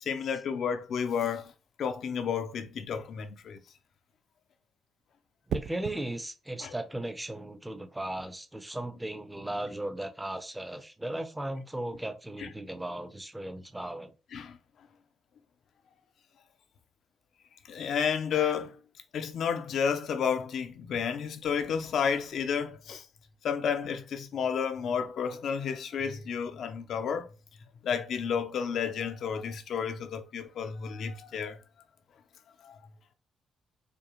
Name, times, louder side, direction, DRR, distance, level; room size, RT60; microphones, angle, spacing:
voice 1, 0.0-1.5 1.8-3.6 6.6-6.8 12.4-12.5 14.3-14.6 17.7-18.8 19.1-23.1 23.4-27.3 27.8-31.6 32.6-32.8, left 7 dB, 65° left, 0.6 m, -31 dB
sound 1, 2.7-3.0 5.5-6.0 8.0-8.3, right 8 dB, 70° right, 0.4 m, -36 dB
voice 2, 5.5-14.1, right 1 dB, 10° right, 0.6 m, -36 dB
5.2 x 2.3 x 3.0 m
cardioid pair, 90°, 0 cm